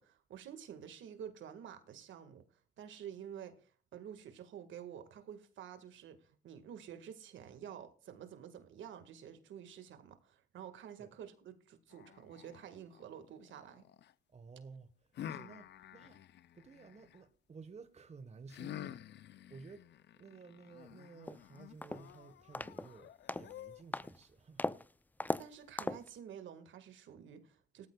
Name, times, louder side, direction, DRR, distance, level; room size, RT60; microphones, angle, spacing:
voice 1, 0.0-2.4 2.8-13.9 25.4-27.9, right 9 dB, 75° right, 1.8 m, -50 dB
sound 1, 11.9-14.1 15.1-17.2 18.5-24.1, left 12 dB, 60° left, 0.6 m, -50 dB
voice 2, 14.3-16.2 16.5-19.9 20.1-24.7, right 4 dB, 35° right, 1.3 m, -54 dB
sound 2, 21.3-21.4 21.8-22.1 22.5-22.9 23.3-23.5 23.9-24.2 24.6-24.8 25.2-25.4 25.8-26.1, left 2 dB, 10° left, 0.5 m, -37 dB
18.0 x 13.5 x 2.3 m
cardioid pair, 90°, 20 cm